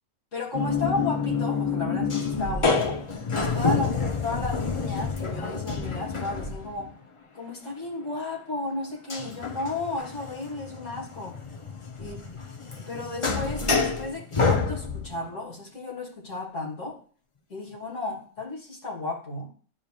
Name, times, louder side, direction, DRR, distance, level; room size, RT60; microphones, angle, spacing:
voice 1, 0.3-3.0 3.3-3.9 4.2-6.9 7.3-11.4 12.0-12.2 12.8-17.0 17.5-19.5, left 2 dB, 60° left, -3 dB, 2.9 m, -33 dB
sound 1, 0.5-6.9 9.1-15.2, left 4 dB, 30° left, 0.7 m, -28 dB
12.0 x 5.2 x 2.4 m, 0.43 s
omnidirectional pair, 1.5 m